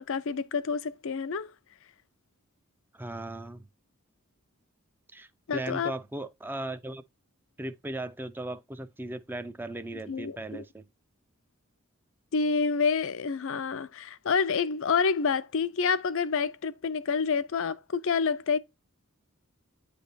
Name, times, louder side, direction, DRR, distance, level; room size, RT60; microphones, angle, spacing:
voice 1, 0.0-1.5 5.5-5.9 10.1-10.6 12.3-18.6, left 5 dB, 65° left, 0.6 m, -28 dB
voice 2, 2.9-3.7 5.1-7.0 7.6-10.8, right 1 dB, 10° right, 0.4 m, -37 dB
8.9 x 3.4 x 4.0 m
head